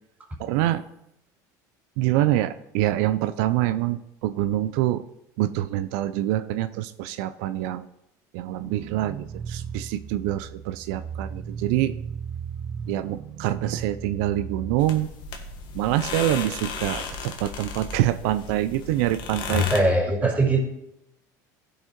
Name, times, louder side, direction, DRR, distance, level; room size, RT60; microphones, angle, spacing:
voice 1, 0.4-0.8 2.0-5.0 5.4-7.9 8.3-12.0 12.9-15.1 15.7-19.6, right 14 dB, 75° right, 12 dB, 0.6 m, -25 dB
sound 1, 8.6-14.8, right 7 dB, 45° right, 0.9 m, -36 dB
sound 2, 14.8-19.8, left 5 dB, 55° left, 1.6 m, -35 dB
voice 2, 19.5-20.6, right 1 dB, 15° right, 0 dB, 4.2 m, -22 dB
15.5 x 5.5 x 4.4 m, 0.81 s
supercardioid pair, 90°, 9 cm